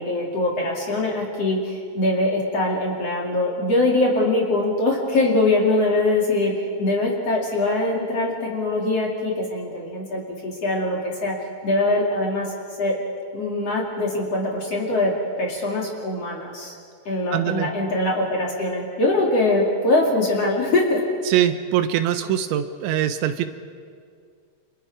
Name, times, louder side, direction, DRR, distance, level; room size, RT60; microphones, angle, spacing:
voice 1, 0.0-11.4 11.6-12.5 12.8-13.0 13.3-15.1 15.4-16.7 17.0-21.1, left 2 dB, 40° left, -2 dB, 2.9 m, -22 dB
voice 2, 17.3-17.7 21.3-23.5, right 11 dB, 80° right, 9 dB, 3.2 m, -22 dB
29.0 x 27.5 x 4.8 m, 2.1 s
omnidirectional pair, 5.3 m